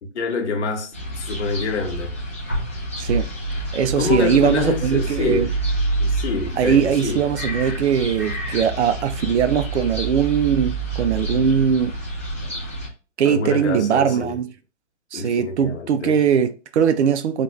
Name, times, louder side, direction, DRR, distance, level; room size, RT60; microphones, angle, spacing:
voice 1, 0.0-2.1 4.0-5.5 6.0-7.2 13.2-14.4 15.1-16.2, left 4 dB, 65° left, 1.1 m, -26 dB
sound 1, 0.9-12.9, right 2 dB, 15° left, 0.3 m, -27 dB
voice 2, 3.0-3.3 3.7-5.5 6.6-11.9 13.2-14.5 15.1-17.4, right 7 dB, 65° right, 0.5 m, -20 dB
3.6 x 2.4 x 3.0 m
hypercardioid pair, 145°, 37 cm